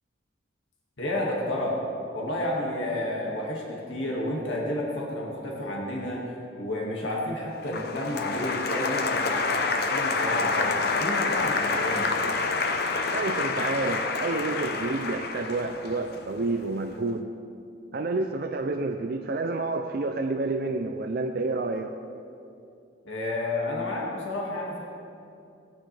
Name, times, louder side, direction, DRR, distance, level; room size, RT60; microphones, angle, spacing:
voice 1, 1.0-1.8 2.1-6.2 6.6-12.1 23.1-24.8, left 1 dB, 80° left, -3 dB, 1.9 m, -30 dB
Applause, 7.7-16.7, left 4 dB, 55° left, 0.7 m, -28 dB
voice 2, 13.1-17.3 17.9-22.0, right 3 dB, 50° right, 6 dB, 0.4 m, -29 dB
18.0 x 9.5 x 3.3 m, 2.6 s
head